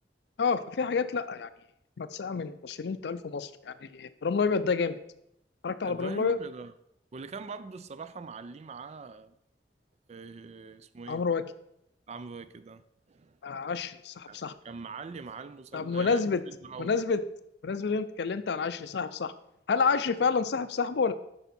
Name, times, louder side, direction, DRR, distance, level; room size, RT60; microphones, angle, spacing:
voice 1, 0.4-1.5 2.0-5.0 5.6-6.4 11.1-11.4 13.4-14.5 15.7-16.4 16.8-17.2 17.6-19.3 19.7-21.1, left 5 dB, 70° left, 0.5 m, -29 dB
voice 2, 5.8-6.7 7.1-9.3 10.1-11.2 12.1-13.4 14.3-17.0, right 4 dB, 40° right, 0.4 m, -43 dB
8.1 x 5.5 x 4.2 m
head